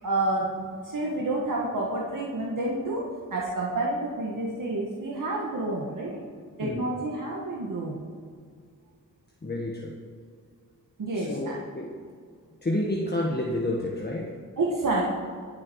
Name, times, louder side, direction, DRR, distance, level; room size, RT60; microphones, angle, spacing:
voice 1, 0.0-6.2 6.6-8.0 11.0-11.6 14.6-15.1, right 2 dB, 65° right, -3 dB, 1.9 m, -29 dB
voice 2, 9.4-10.0 11.1-11.9 12.6-14.4, left 1 dB, 30° left, -2 dB, 1.5 m, -30 dB
21.0 x 7.4 x 4.8 m, 2.1 s
wide cardioid pair, 90°, 34 cm